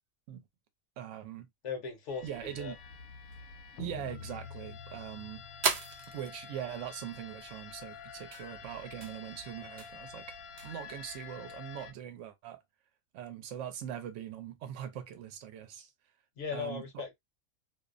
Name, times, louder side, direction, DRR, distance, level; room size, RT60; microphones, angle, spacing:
voice 1, 1.0-1.5 2.2-2.8 3.8-5.4 6.1-10.4 10.6-12.6 13.1-15.9 16.5-17.0, right 10 dB, 65° right, 0.9 m, -42 dB
voice 2, 1.6-2.7 16.4-17.1, left 5 dB, 65° left, 1.0 m, -38 dB
sound 1, 2.1-11.9, left 6 dB, 90° left, 1.0 m, -48 dB
sound 2, 2.3-11.3, right 5 dB, 90° right, 0.3 m, -41 dB
2.5 x 2.0 x 2.4 m
omnidirectional pair, 1.4 m